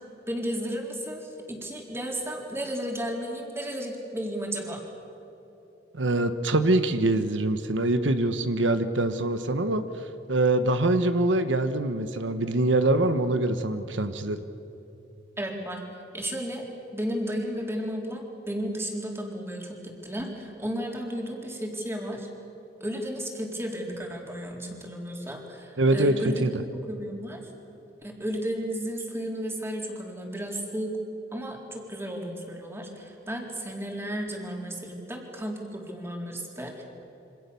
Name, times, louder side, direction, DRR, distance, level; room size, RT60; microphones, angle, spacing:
voice 1, 0.3-4.8 15.4-15.8 16.1-16.7 16.9-22.3 22.8-27.4 28.0-31.0 31.3-36.8, equal, 15° right, 0 dB, 4.0 m, -33 dB
voice 2, 5.9-9.8 10.3-14.4 25.8-26.2 26.4-26.5, right 2 dB, 90° right, 9 dB, 1.2 m, -24 dB
28.0 x 25.5 x 7.0 m, 3.0 s
head